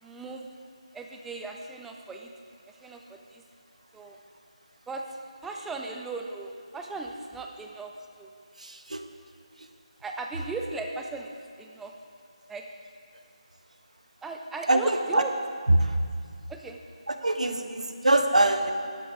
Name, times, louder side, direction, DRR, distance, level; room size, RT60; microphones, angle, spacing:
voice 1, 0.0-0.5 0.9-2.3 2.7-3.4 3.9-4.2 4.9-5.0 5.4-7.9 8.2-8.3 10.0-11.9 12.5-12.6 14.2-15.3 16.5-16.8, right 3 dB, 5° right, 2 dB, 0.4 m, -37 dB
voice 2, 8.6-9.0 9.6-9.7 14.7-15.2 15.7-16.0 17.1-18.7, right 1 dB, 80° right, 7 dB, 0.9 m, -24 dB
12.0 x 8.3 x 4.7 m, 2.2 s
figure-of-eight pair, 160°, 4 cm